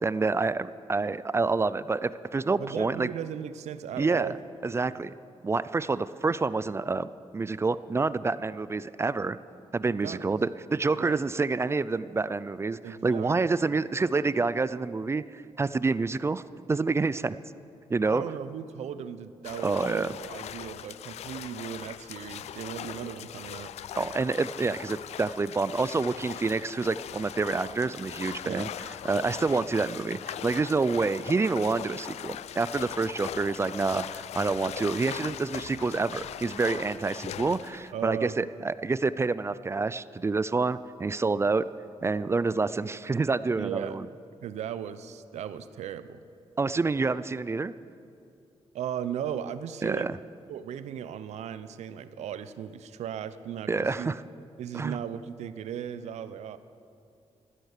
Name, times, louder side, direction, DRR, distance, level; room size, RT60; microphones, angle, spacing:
voice 1, 0.0-3.1 4.0-4.3 4.6-5.1 5.4-9.4 9.7-16.4 16.7-17.3 17.9-18.2 19.6-20.1 24.0-28.7 29.0-41.7 42.0-44.1 46.6-47.7 49.8-50.2 53.7-54.2 54.7-55.0, right 3 dB, 25° right, 16 dB, 0.4 m, -28 dB
voice 2, 2.6-4.3 4.8-5.0 10.0-10.2 10.9-11.2 12.8-13.3 18.1-23.7 28.4-28.7 37.9-38.4 43.6-44.0 44.4-46.2 48.7-50.2 50.5-54.1 54.6-56.6, right 9 dB, 85° right, 13 dB, 0.7 m, -37 dB
sound 1, 19.4-37.9, left 11 dB, 75° left, 0.4 m, -40 dB
15.0 x 12.0 x 6.6 m, 2.5 s
cardioid pair, 95°, 11 cm